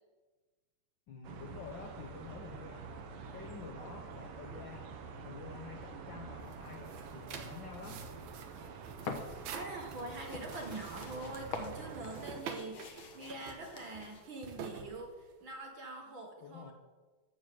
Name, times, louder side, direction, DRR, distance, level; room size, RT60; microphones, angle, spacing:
voice 1, 1.1-2.9 3.3-4.9 5.2-8.1 16.4-16.7, left 5 dB, 75° left, 3 dB, 1.0 m, -49 dB
sound 1, 1.2-12.4, right 5 dB, 85° right, 2.8 m, -47 dB
sound 2, 6.4-15.5, right 6 dB, 70° right, 2.4 m, -48 dB
sound 3, 9.0-14.2, left 5 dB, 55° left, 1.5 m, -46 dB
voice 2, 9.5-16.7, right 2 dB, 50° right, 2 dB, 1.6 m, -44 dB
12.5 x 7.2 x 7.6 m, 1.3 s
omnidirectional pair, 3.6 m